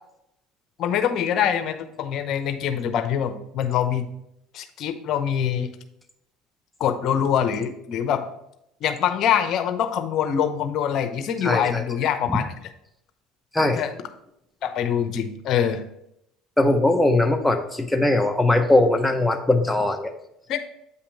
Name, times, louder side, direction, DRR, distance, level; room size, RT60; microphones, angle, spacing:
voice 1, 0.8-4.1 4.5-5.7 6.8-8.2 8.8-12.4 13.7-13.9 14.6-15.8 20.5-20.6, left 9 dB, 55° left, 8 dB, 0.8 m, -24 dB
voice 2, 11.4-11.8 12.3-12.4 13.5-13.8 16.6-20.1, left 2 dB, 5° left, 4 dB, 0.8 m, -20 dB
8.4 x 2.9 x 5.1 m, 0.78 s
supercardioid pair, 90°, 0 cm